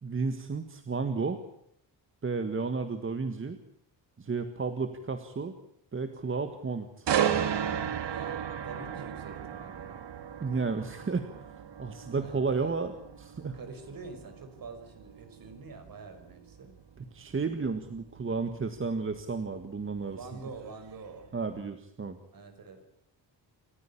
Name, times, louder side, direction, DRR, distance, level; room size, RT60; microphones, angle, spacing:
voice 1, 0.0-1.4 2.2-3.6 4.2-5.5 5.9-7.1 10.4-11.3 11.8-12.9 13.2-13.6 17.1-20.2 21.3-22.2, right 4 dB, 30° right, 9 dB, 1.7 m, -32 dB
sound 1, 7.1-20.9 21.3-21.6, right 9 dB, 70° right, 2.1 m, -35 dB
voice 2, 8.1-10.1 12.2-12.8 13.5-16.7 20.1-21.3 22.3-22.8, right 4 dB, 50° right, 8 dB, 5.5 m, -46 dB
29.0 x 15.0 x 8.7 m, 0.74 s
wide cardioid pair, 160°, 44 cm